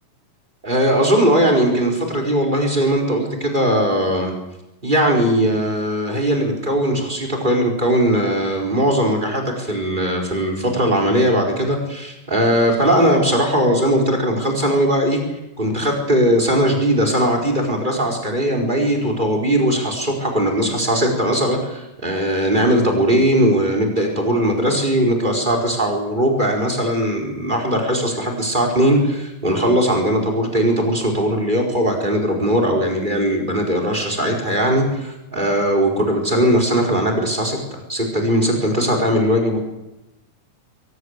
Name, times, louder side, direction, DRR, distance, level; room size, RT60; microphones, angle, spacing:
voice 1, 0.6-4.3 4.8-39.6, equal, 15° right, 3 dB, 4.8 m, -19 dB
22.5 x 20.5 x 8.3 m, 0.96 s
omnidirectional pair, 4.0 m